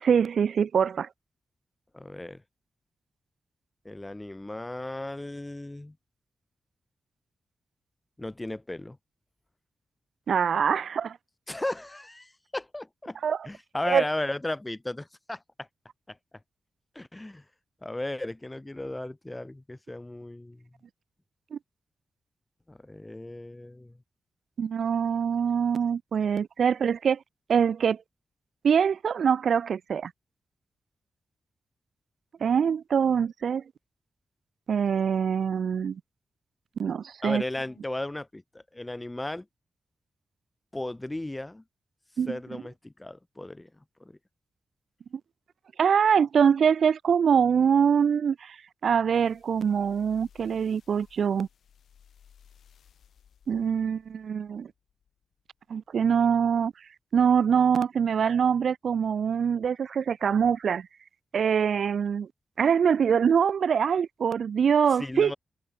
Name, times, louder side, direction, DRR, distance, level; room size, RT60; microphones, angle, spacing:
voice 1, 0.0-1.1 10.3-11.2 13.2-13.4 13.9-14.0 21.5-21.6 24.6-27.2 27.5-28.0 28.6-30.1 32.4-33.6 34.7-36.0 36.8-37.4 42.2-42.4 45.8-48.6 48.8-51.5 53.5-54.7 55.7-56.7 57.1-60.9 61.3-62.3 62.6-65.3, right 7 dB, 65° right, 0.3 m, -24 dB
voice 2, 1.9-2.4 3.8-6.0 8.2-9.0 11.5-13.2 13.4-15.7 16.1-16.2 16.9-17.4 17.8-20.7 22.7-24.0 37.2-39.5 40.7-41.6 42.3-43.7 44.0-44.2 65.0-65.4, left 1 dB, 10° left, 0.9 m, -35 dB
sound 1, 49.1-55.6 56.2-56.3, left 8 dB, 80° left, 7.8 m, -60 dB
wide cardioid pair, 150°, 0 cm